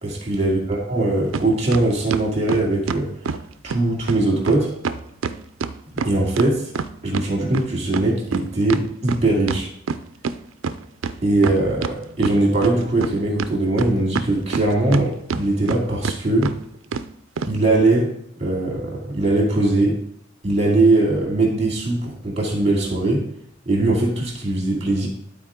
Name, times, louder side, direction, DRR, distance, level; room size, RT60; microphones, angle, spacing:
voice 1, 0.0-3.1 3.6-4.7 6.0-6.7 7.0-9.7 11.2-16.5 17.5-18.1 18.4-20.0 20.4-23.3 23.7-25.1, right 2 dB, 30° right, -1 dB, 2.3 m, -20 dB
sound 1, 1.3-1.5 1.7-3.4 3.7-3.8 4.1-4.2 4.5-4.6 4.8-7.3 7.5-10.3 10.6-10.7 11.0-11.9 12.2-13.1 13.4-15.0 15.3-15.8 16.0-16.2 16.4-16.5 16.9-17.1 17.4-17.5, right 5 dB, 80° right, 0.4 m, -26 dB
11.5 x 4.4 x 3.7 m, 0.72 s
head